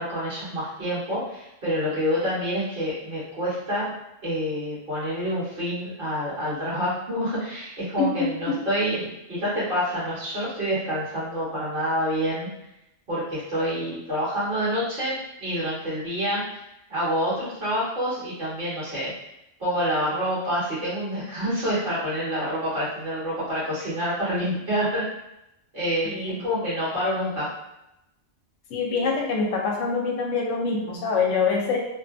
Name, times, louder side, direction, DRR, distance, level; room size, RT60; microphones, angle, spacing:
voice 1, 0.0-3.9 4.2-12.5 13.1-16.4 16.9-19.1 19.6-25.0 25.7-26.1 26.4-27.5, equal, 45° right, -10 dB, 1.5 m, -27 dB
voice 2, 8.0-8.6 26.0-26.4 28.7-31.8, left 4 dB, 80° left, 0 dB, 0.9 m, -25 dB
3.0 x 2.2 x 2.5 m, 0.87 s
omnidirectional pair, 1.3 m